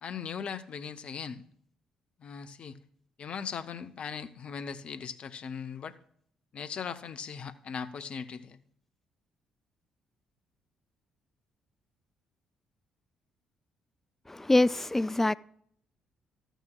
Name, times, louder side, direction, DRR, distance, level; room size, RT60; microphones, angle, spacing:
voice 1, 0.0-1.4 2.2-2.8 3.2-6.0 6.5-8.6, left 6 dB, 45° left, 0.7 m, -39 dB
voice 2, 14.3-15.3, left 2 dB, 10° left, 0.3 m, -24 dB
13.0 x 9.0 x 2.3 m
figure-of-eight pair, 45°, 3 cm